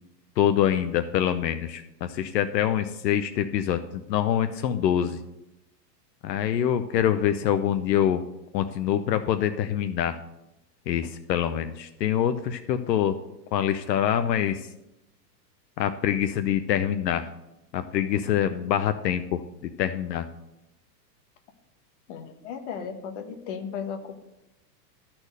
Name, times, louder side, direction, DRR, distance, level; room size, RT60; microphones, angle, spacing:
voice 1, 0.4-5.2 6.2-8.2 8.5-10.2 10.9-13.2 13.5-14.7 15.8-17.3 17.7-19.4 19.8-20.3, left 10 dB, 75° left, 9 dB, 0.8 m, -25 dB
voice 2, 22.1-24.2, left 7 dB, 45° left, 4 dB, 1.4 m, -35 dB
13.0 x 4.4 x 6.6 m, 0.90 s
supercardioid pair, 165°, 50 cm